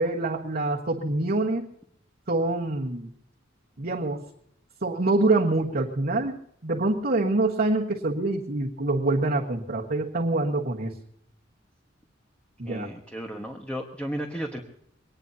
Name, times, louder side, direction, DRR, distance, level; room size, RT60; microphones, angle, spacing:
voice 1, 0.0-1.7 2.3-3.1 3.8-4.2 4.8-10.9 12.6-12.9, right 2 dB, 55° right, -3 dB, 1.5 m, -25 dB
voice 2, 12.7-14.6, equal, 5° left, 1 dB, 1.4 m, -34 dB
22.5 x 19.0 x 2.8 m, 0.69 s
head